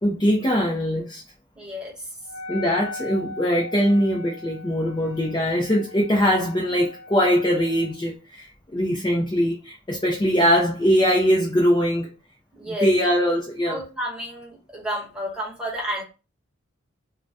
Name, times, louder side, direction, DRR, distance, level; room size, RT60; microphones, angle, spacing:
voice 1, 0.0-1.2 2.5-12.1 12.7-13.8, equal, 20° left, 0.4 m, -22 dB
voice 2, 1.6-2.1 12.5-13.1 13.6-16.0, equal, 5° right, 1.0 m, -31 dB
Wind instrument woodwind instrument, 2.2-8.0, left 2 dB, 80° left, 0.6 m, -39 dB
2.6 x 2.1 x 3.3 m
head